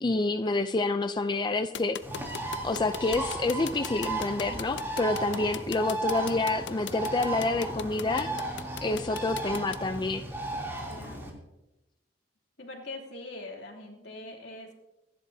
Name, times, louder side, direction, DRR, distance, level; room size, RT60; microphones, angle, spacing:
voice 1, 0.0-2.0 2.6-8.3 8.8-10.3, left 3 dB, 25° left, 8 dB, 0.4 m, -28 dB
sound 1, 1.7-9.8, left 8 dB, 85° left, 0.6 m, -39 dB
Bird, 2.0-11.3, right 2 dB, 15° right, 3.0 m, -35 dB
voice 2, 10.9-11.4 12.6-14.7, left 2 dB, 65° left, 0 dB, 3.0 m, -42 dB
26.0 x 11.0 x 2.8 m, 0.99 s
head